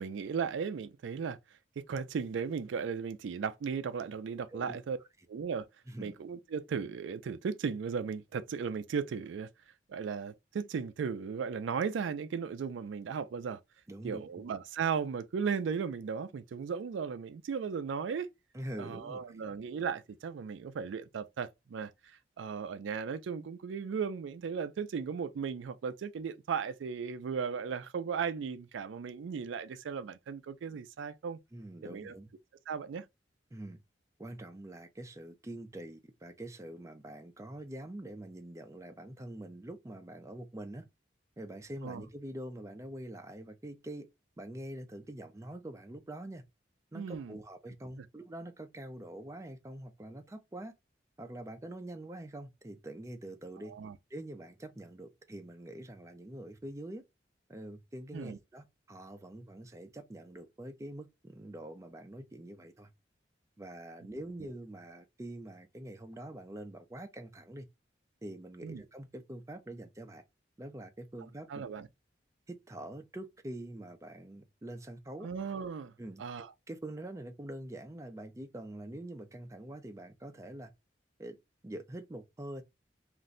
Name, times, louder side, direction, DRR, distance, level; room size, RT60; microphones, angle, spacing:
voice 1, 0.0-1.4 1.8-5.0 5.3-5.7 6.0-9.5 9.9-13.6 14.0-18.3 18.8-31.4 31.8-32.1 32.7-33.1 41.8-42.0 46.9-47.4 53.7-54.0 58.1-58.4 64.4-64.5 68.6-68.8 71.5-71.9 75.2-75.9 76.2-76.5, right 6 dB, 80° right, 0.3 m, -36 dB
voice 2, 13.9-14.4 18.5-19.4 31.5-32.3 33.5-33.8 34.2-40.9 41.4-44.1 44.4-46.4 46.9-50.7 51.2-53.8 54.1-57.0 57.5-62.9 63.6-67.7 68.2-70.2 70.6-71.6 72.5-75.3 76.0-76.2 76.7-80.7 81.2-81.4 81.6-82.6, right 1 dB, 15° right, 0.4 m, -45 dB
2.5 x 2.1 x 3.7 m
head